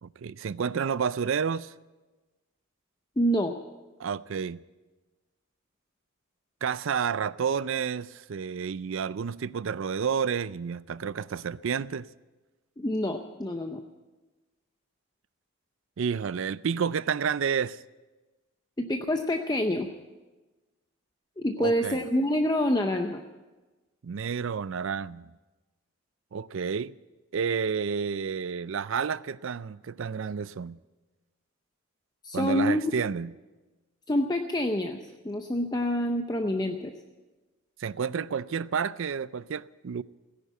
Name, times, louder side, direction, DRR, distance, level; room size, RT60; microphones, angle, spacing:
voice 1, 0.0-1.7 4.0-4.6 6.6-12.1 16.0-17.8 21.6-22.0 24.0-25.3 26.3-26.9 27.3-30.8 32.3-33.3 37.8-40.0, right 6 dB, 60° right, 0.4 m, -30 dB
voice 2, 3.2-3.5 12.8-13.8 18.8-19.9 21.4-23.2 32.2-32.9 34.1-35.0 35.2-36.9, left 1 dB, 20° left, 0.6 m, -27 dB
17.0 x 10.0 x 8.1 m
head